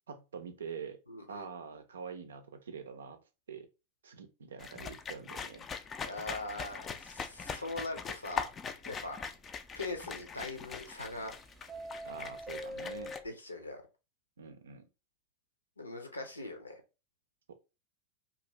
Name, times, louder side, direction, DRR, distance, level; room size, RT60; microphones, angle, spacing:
voice 1, 0.1-1.0 1.3-3.2 3.5-3.7 4.0-5.7 12.0-13.1 14.4-14.8 17.5-17.6, right 6 dB, 65° right, 0.5 m, -45 dB
voice 2, 1.1-1.5 6.0-8.5 8.9-9.2 9.7-11.3 13.2-13.8 15.8-16.8, left 2 dB, 80° left, 0.6 m, -41 dB
sound 1, 4.6-13.2, left 6 dB, 20° left, 0.3 m, -42 dB
Subway metro underground, 7.0-7.1 7.4-7.5 8.0-8.1 10.6-11.3 11.6-13.3, equal, 15° right, 0.7 m, -43 dB
2.5 x 2.4 x 3.0 m
figure-of-eight pair, 90°, 0 cm